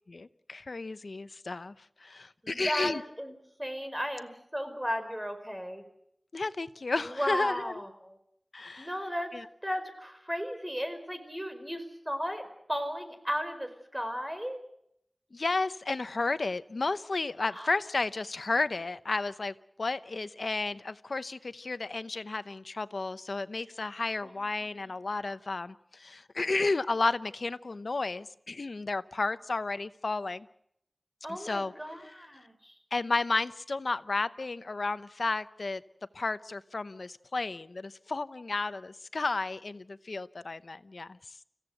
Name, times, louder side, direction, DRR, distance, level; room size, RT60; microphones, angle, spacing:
voice 1, 0.1-1.7 2.0-3.0 6.3-7.8 8.5-8.9 9.3-9.4 15.3-30.5 31.3-31.7 32.9-35.8 36.1-41.2, left 3 dB, 80° left, 13 dB, 0.8 m, -32 dB
voice 2, 2.4-3.3 3.6-5.8 6.9-8.2 8.8-9.3 9.6-12.4 12.7-14.6 17.5-17.7 24.2-24.5 24.8-24.9 31.2-32.7, equal, 10° right, 7 dB, 4.9 m, -35 dB
29.5 x 16.0 x 7.9 m, 0.74 s
wide cardioid pair, 60°, 0 cm